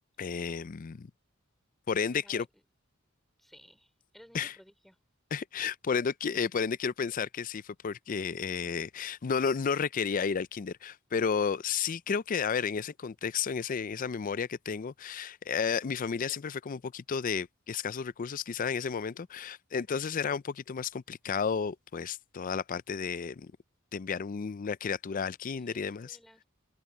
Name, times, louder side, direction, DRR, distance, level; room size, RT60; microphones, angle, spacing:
voice 1, 0.2-1.1 1.9-2.5 4.3-4.5 5.3-23.5 23.9-26.2, left 6 dB, 40° left, 0.4 m, -32 dB
voice 2, 2.1-2.5 3.4-5.0 25.5-26.4, equal, ahead, 4.6 m, -57 dB
head